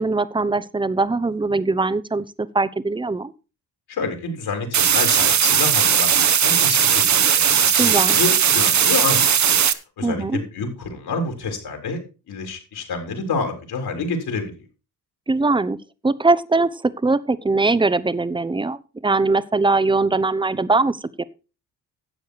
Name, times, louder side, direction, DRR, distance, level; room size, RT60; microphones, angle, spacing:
voice 1, 0.0-3.3 7.8-8.2 10.0-10.4 15.3-15.8 16.0-21.2, right 3 dB, 10° right, 16 dB, 0.7 m, -21 dB
voice 2, 3.9-9.4 10.0-12.0 12.3-14.6, left 4 dB, 65° left, 3 dB, 3.9 m, -28 dB
sound 1, 4.7-9.7, right 8 dB, 45° right, 1.0 m, -17 dB
11.5 x 7.7 x 4.6 m, 0.32 s
cardioid pair, 75°, 41 cm